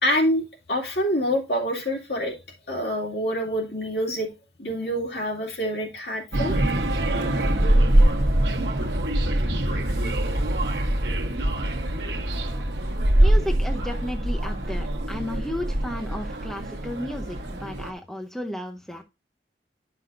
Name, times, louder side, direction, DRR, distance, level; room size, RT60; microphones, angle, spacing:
voice 1, 0.0-2.4 2.7-4.3 4.6-6.6, equal, 65° left, 0 dB, 2.3 m, -26 dB
sound 1, 6.3-17.9, right 1 dB, 75° right, 1.0 m, -23 dB
voice 2, 13.2-19.0, left 1 dB, ahead, 3 dB, 0.6 m, -33 dB
10.5 x 5.9 x 2.5 m, 0.26 s
head